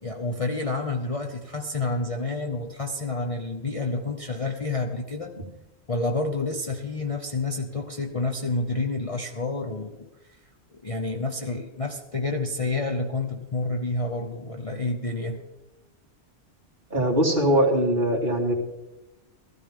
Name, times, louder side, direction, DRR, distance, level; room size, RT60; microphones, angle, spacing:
voice 1, 0.0-5.4 5.9-10.1 10.8-15.4 17.5-17.6, left 2 dB, 35° left, 2 dB, 0.8 m, -29 dB
voice 2, 16.9-18.5, equal, 40° right, -3 dB, 2.7 m, -21 dB
16.0 x 14.5 x 3.7 m, 1.0 s
omnidirectional pair, 1.3 m